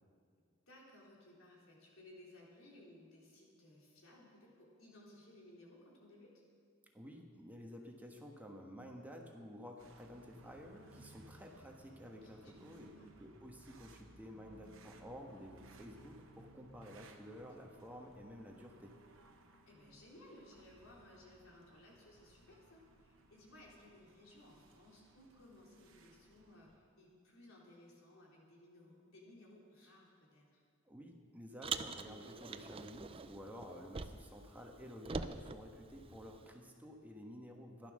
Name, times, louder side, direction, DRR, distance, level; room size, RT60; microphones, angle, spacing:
voice 1, 0.7-6.3 12.0-13.2 19.7-30.6, left 1 dB, 80° left, -4 dB, 3.9 m, -60 dB
voice 2, 6.9-12.9 13.2-19.0 30.8-37.9, equal, 10° right, 1 dB, 1.3 m, -52 dB
sound 1, 9.8-26.8, right 2 dB, 70° right, 1.3 m, -62 dB
Car, 31.6-34.4 34.7-36.5, right 4 dB, 30° right, 0.5 m, -44 dB
14.5 x 11.5 x 6.4 m, 2.1 s
head